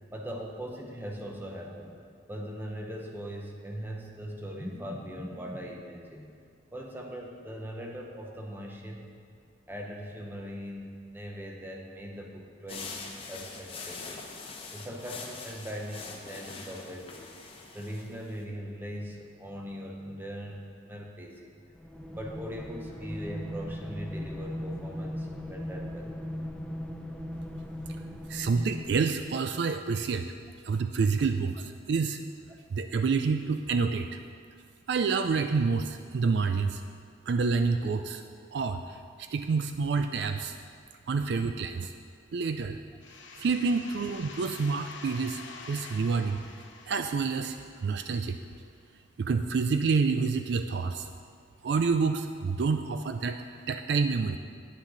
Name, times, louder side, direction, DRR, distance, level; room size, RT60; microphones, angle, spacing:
voice 1, 0.1-2.0 2.3-6.3 6.7-9.1 9.7-14.2 14.7-17.3 17.7-21.5 22.1-26.1, equal, 10° right, 0 dB, 0.9 m, -40 dB
sound 1, 12.7-18.4, left 4 dB, 30° left, 0.8 m, -43 dB
sound 2, 21.8-29.5, equal, 5° left, 0.5 m, -38 dB
voice 2, 28.3-30.3 30.6-32.2 32.7-34.2 34.9-36.8 37.3-38.2 38.5-40.6 41.1-41.9 42.3-42.8 43.4-45.4 45.7-46.4 46.9-47.6 47.8-48.4 49.2-51.1 51.6-53.4 53.7-54.4, right 4 dB, 60° right, 8 dB, 0.4 m, -28 dB
sound 3, 43.0-48.5, left 4 dB, 75° left, 0.9 m, -47 dB
9.8 x 8.7 x 3.9 m, 2.2 s
head